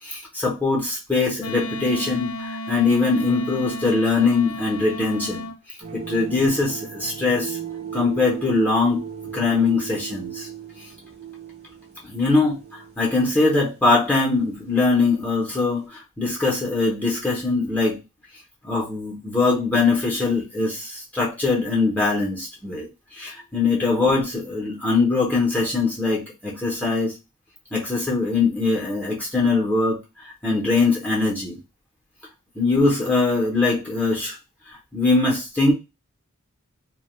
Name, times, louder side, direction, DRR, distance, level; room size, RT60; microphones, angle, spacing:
voice 1, 0.0-5.5 5.9-7.6 7.9-9.0 9.3-10.5 12.1-12.6 13.0-18.0 18.6-22.9 23.2-27.1 27.7-30.0 30.4-31.6 32.6-34.4 34.9-35.7, left 3 dB, 10° left, -4 dB, 0.7 m, -22 dB
Wind instrument woodwind instrument, 1.4-5.6, left 1 dB, 75° left, 0.4 m, -33 dB
sound 1, 5.8-15.9, right 8 dB, 30° right, 0.7 m, -38 dB
2.8 x 2.1 x 2.9 m, 0.26 s
head